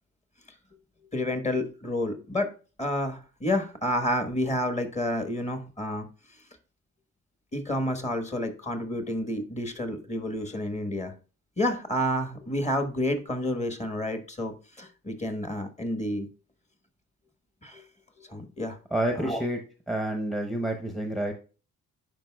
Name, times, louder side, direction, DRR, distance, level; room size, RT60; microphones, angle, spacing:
voice 1, 1.1-2.5 2.8-6.1 7.5-11.1 11.6-16.3 17.6-17.8 18.2-18.8 19.2-19.4, left 1 dB, 20° left, 7 dB, 1.3 m, -30 dB
voice 2, 18.9-19.6 19.9-21.3, right 1 dB, ahead, 4 dB, 0.8 m, -28 dB
10.5 x 4.7 x 2.3 m, 0.35 s
cardioid pair, 90°, 30 cm